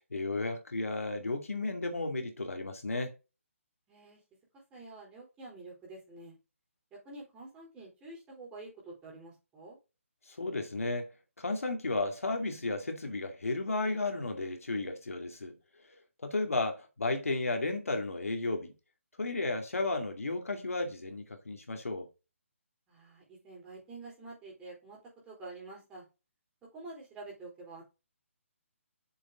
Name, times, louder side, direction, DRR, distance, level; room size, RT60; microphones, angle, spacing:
voice 1, 0.1-3.1 10.3-11.1 11.4-15.5 16.2-18.7 19.2-22.1, left 2 dB, 85° left, 2.3 m, -33 dB
voice 2, 3.9-4.2 4.7-6.4 7.0-9.8 22.9-25.0 25.2-26.0 26.7-27.8, right 2 dB, 15° right, 4.4 m, -48 dB
7.1 x 6.6 x 3.8 m
hypercardioid pair, 155°, 7 cm